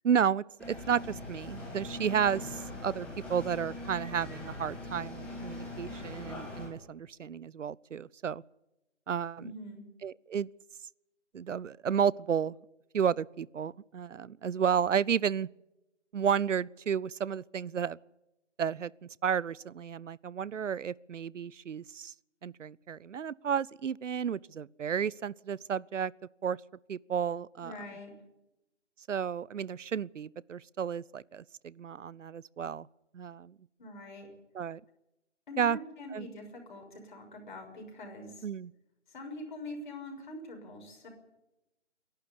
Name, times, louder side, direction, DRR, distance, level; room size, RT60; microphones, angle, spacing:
voice 1, 0.0-8.4 9.1-9.4 10.0-10.5 11.3-12.6 12.9-15.5 16.1-18.0 18.6-22.1 22.4-26.1 26.4-26.6 26.9-27.7 29.1-32.9 33.1-33.6 34.5-34.8 35.6-35.8 36.1-36.3 38.4-38.7, right 7 dB, 80° right, 0.6 m, -32 dB
sound 1, 0.6-6.7, left 2 dB, 5° left, 2.6 m, -42 dB
voice 2, 9.4-9.8 27.6-28.1 33.8-34.3 35.5-38.5 39.1-41.1, left 1 dB, 40° left, 6.2 m, -44 dB
26.5 x 11.5 x 9.8 m
figure-of-eight pair, 165°, 36 cm